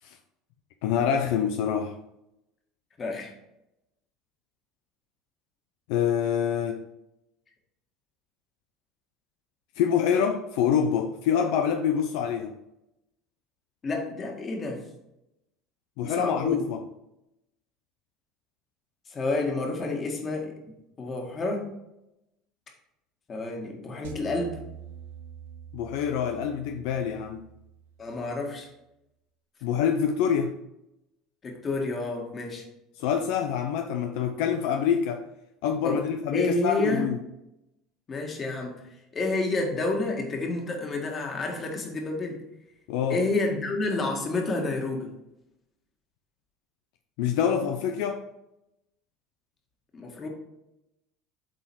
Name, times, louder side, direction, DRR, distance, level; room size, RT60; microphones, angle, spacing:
voice 1, 0.8-2.0 5.9-6.8 9.8-12.5 16.0-16.8 25.7-27.4 29.6-30.6 33.0-35.2 35.6-37.2 42.9-43.2 47.2-48.2, left 8 dB, 70° left, 6 dB, 0.5 m, -26 dB
voice 2, 3.0-3.3 13.8-14.8 16.0-16.6 19.1-20.5 21.0-21.7 23.3-24.6 28.0-28.7 31.4-32.6 35.8-36.0 36.3-37.1 38.1-38.9 39.1-42.4 43.1-45.1 49.9-50.3, left 2 dB, 35° left, 2 dB, 1.9 m, -29 dB
sound 1, 24.0-28.4, right 8 dB, 85° right, 0.7 m, -46 dB
7.8 x 4.0 x 4.5 m, 0.88 s
hypercardioid pair, 80°, 0 cm